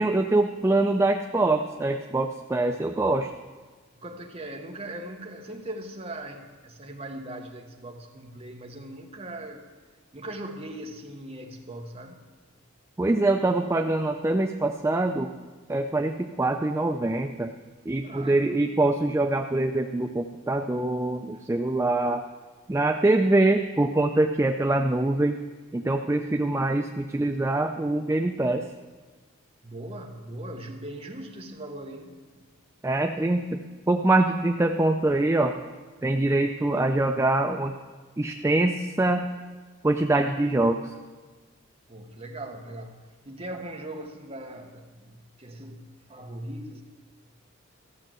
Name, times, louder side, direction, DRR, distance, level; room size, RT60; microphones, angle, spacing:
voice 1, 0.0-3.3 13.0-15.3 15.7-17.5 17.9-22.2 22.7-25.4 25.7-28.7 32.8-33.6 33.9-35.5 36.0-37.7 38.2-39.3 39.8-40.9, right 2 dB, 15° right, 4 dB, 0.3 m, -24 dB
voice 2, 4.0-9.6 10.1-12.2 18.0-18.6 21.3-21.4 29.6-32.4 41.9-46.8, right 1 dB, 30° right, 3 dB, 1.1 m, -40 dB
14.0 x 6.5 x 7.5 m, 1.4 s
head